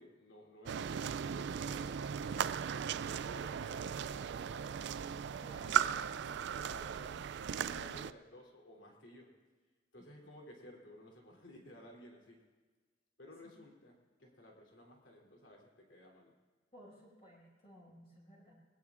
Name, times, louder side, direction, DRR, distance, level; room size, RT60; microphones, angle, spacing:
voice 1, 0.0-2.4 2.9-5.2 5.6-5.9 6.2-7.2 7.5-9.3 9.9-12.4 13.2-16.3, equal, 65° left, -1 dB, 3.3 m, -55 dB
sound 1, 0.7-8.1, right 8 dB, 60° right, 0.3 m, -37 dB
voice 2, 5.4-6.2 7.5-7.9 16.7-18.5, left 1 dB, 30° left, -4 dB, 5.9 m, -57 dB
21.0 x 19.5 x 2.5 m, 1.3 s
head